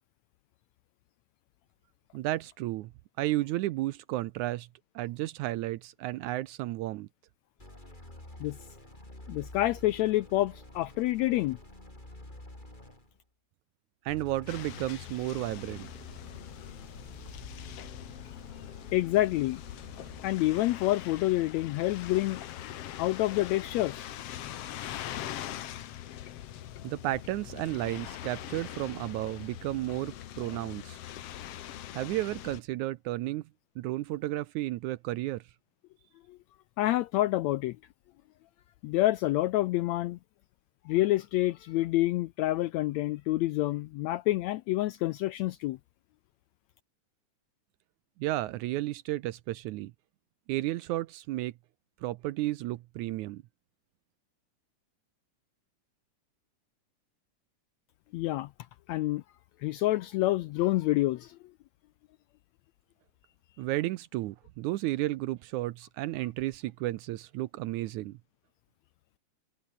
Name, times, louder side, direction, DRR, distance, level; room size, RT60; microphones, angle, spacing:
voice 1, 2.1-2.9 3.2-4.7 5.0-7.1 14.1-15.9 26.8-31.0 31.9-33.5 33.8-35.4 48.2-49.9 50.5-51.5 52.0-53.4 63.6-68.2, right 16 dB, 80° right, 1.9 m, -33 dB
sound 1, 7.6-13.2 14.1-20.5, left 1 dB, 15° left, 5.7 m, -49 dB
voice 2, 9.3-11.6 18.9-19.6 20.2-22.4 23.0-24.1 36.3-36.4 36.8-37.8 38.8-40.2 40.8-45.8 58.1-58.5 58.9-59.2 59.6-61.4, left 16 dB, 85° left, 1.6 m, -28 dB
sound 2, 14.5-32.6, left 12 dB, 60° left, 1.8 m, -42 dB
omnidirectional pair, 3.7 m